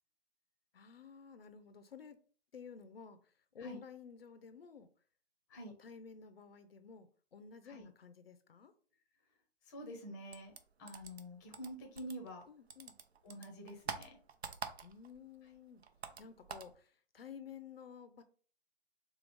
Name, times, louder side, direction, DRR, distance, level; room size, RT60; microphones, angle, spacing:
voice 1, 0.7-2.2 2.5-4.9 5.8-8.7 12.5-13.0 14.8-15.8 16.2-18.2, left 6 dB, 65° left, 0.6 m, -53 dB
voice 2, 9.6-10.5 10.8-12.4 13.2-14.2 15.4-15.5, equal, 20° left, 0.6 m, -47 dB
sound 1, 10.3-12.4 12.7-15.2 15.5-16.8, right 6 dB, 70° right, 0.7 m, -46 dB
3.4 x 3.1 x 3.4 m
figure-of-eight pair, 140°, 33 cm